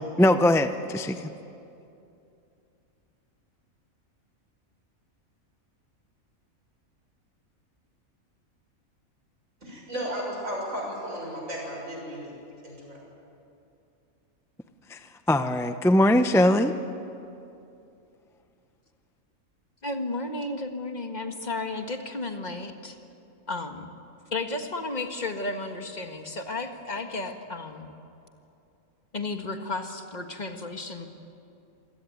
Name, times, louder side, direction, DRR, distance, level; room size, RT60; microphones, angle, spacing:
voice 1, 0.2-1.3 14.9-15.0 15.3-16.8, left 1 dB, 5° left, 9 dB, 0.5 m, -21 dB
voice 2, 9.6-12.3 12.6-13.0, equal, 65° right, -1 dB, 6.9 m, -34 dB
voice 3, 19.8-23.0 23.5-23.9 24.3-27.9 29.1-31.1, left 2 dB, 30° left, 5 dB, 1.8 m, -33 dB
26.5 x 17.0 x 9.3 m, 2.7 s
omnidirectional pair, 1.5 m